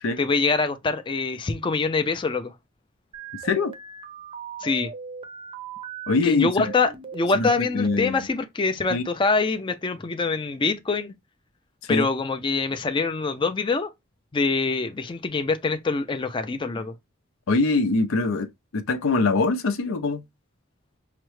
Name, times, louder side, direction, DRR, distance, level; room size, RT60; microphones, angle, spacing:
voice 1, 0.2-2.5 4.6-4.9 6.2-11.1 11.9-13.9 14.3-16.9, left 4 dB, 25° left, 0.4 m, -24 dB
sound 1, 3.1-6.1 6.6-8.2, right 6 dB, 25° right, 0.5 m, -39 dB
voice 2, 6.1-6.7 7.3-8.3 8.9-9.1 11.9-12.1 17.5-20.2, left 3 dB, 80° left, 0.5 m, -23 dB
5.7 x 2.1 x 3.1 m
head